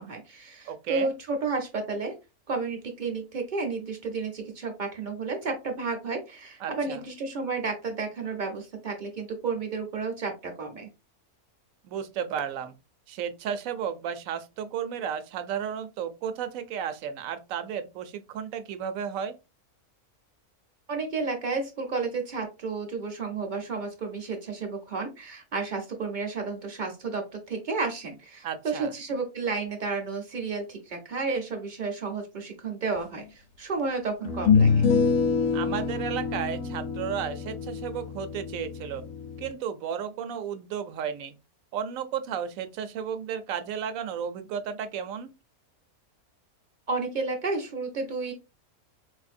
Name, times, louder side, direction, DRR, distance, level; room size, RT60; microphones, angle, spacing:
voice 1, 0.0-2.1 2.5-10.9 20.9-34.9 46.9-48.3, right 4 dB, 45° right, 0.6 m, -32 dB
voice 2, 0.7-1.1 6.6-7.0 11.8-12.7 13.1-19.4 28.4-28.9 35.5-39.0 39.4-41.3 41.7-45.3, right 8 dB, 70° right, 0.9 m, -33 dB
sound 1, 33.2-33.3 34.3-39.5, left 5 dB, 70° left, 0.9 m, -26 dB
4.1 x 2.6 x 2.4 m
omnidirectional pair, 1.6 m